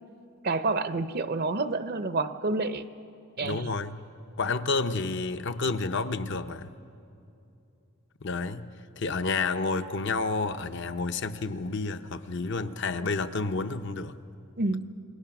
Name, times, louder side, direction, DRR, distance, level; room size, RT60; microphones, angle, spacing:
voice 1, 0.4-2.8 3.4-3.7 14.6-14.9, right 3 dB, 45° right, 11 dB, 0.6 m, -28 dB
voice 2, 3.4-4.0 4.4-6.7 8.2-8.7 9.0-14.1, left 3 dB, 50° left, 10 dB, 0.7 m, -30 dB
27.0 x 22.0 x 6.0 m, 2.7 s
head